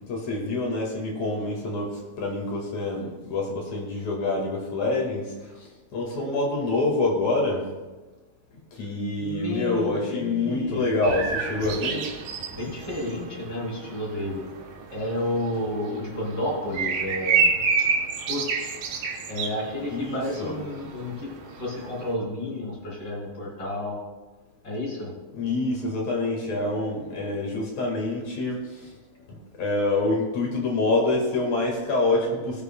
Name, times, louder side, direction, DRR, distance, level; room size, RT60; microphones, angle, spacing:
voice 1, 0.1-7.6 8.7-12.0 19.9-20.6 25.3-28.9 29.3-32.6, left 2 dB, 55° left, 0 dB, 2.7 m, -26 dB
voice 2, 9.2-10.8 12.5-14.4 14.9-17.5 17.8-17.9 18.3-18.7 19.3-24.0 24.6-25.1, left 1 dB, 30° left, -4 dB, 3.5 m, -31 dB
sound 1, 11.0-22.1, right 5 dB, 75° right, 1.6 m, -30 dB
19.5 x 8.1 x 2.2 m, 1.2 s
omnidirectional pair, 4.5 m